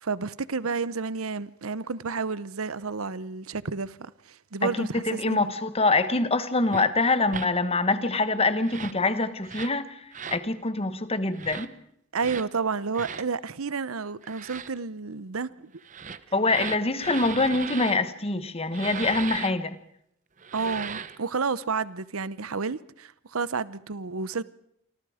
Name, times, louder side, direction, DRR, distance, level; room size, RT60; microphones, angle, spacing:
voice 1, 0.0-5.5 12.1-15.7 20.5-24.4, right 4 dB, 85° right, 0.9 m, -31 dB
voice 2, 4.6-11.7 16.3-19.8, left 3 dB, 30° left, 1.3 m, -25 dB
sound 1, 6.7-6.9 7.3-7.5 8.6-9.0 9.4-9.8 10.1-10.4 11.3-11.7 12.2-12.5 12.9-13.3 14.2-14.7 15.8-18.0 18.7-19.5 20.4-21.2, right 6 dB, 35° right, 1.0 m, -37 dB
28.5 x 24.5 x 5.0 m
head